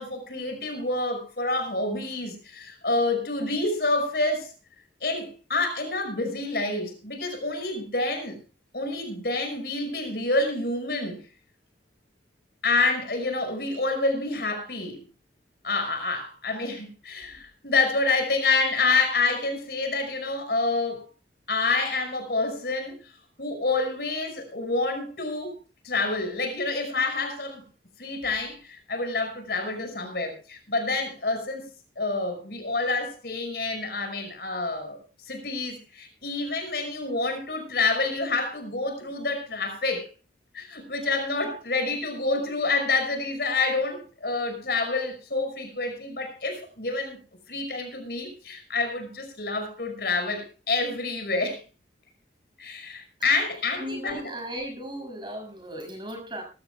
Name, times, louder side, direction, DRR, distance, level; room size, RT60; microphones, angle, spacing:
voice 1, 0.0-4.5 5.0-8.4 8.7-11.2 12.6-15.0 15.6-21.1 21.5-23.0 23.4-25.6 25.8-27.6 28.0-31.7 32.0-35.0 35.3-40.1 40.5-47.2 47.5-51.6 52.6-54.2, left 3 dB, 60° left, 6 dB, 5.5 m, -28 dB
voice 2, 53.8-56.4, equal, 25° right, 4 dB, 6.4 m, -36 dB
22.5 x 14.5 x 2.3 m, 0.33 s
head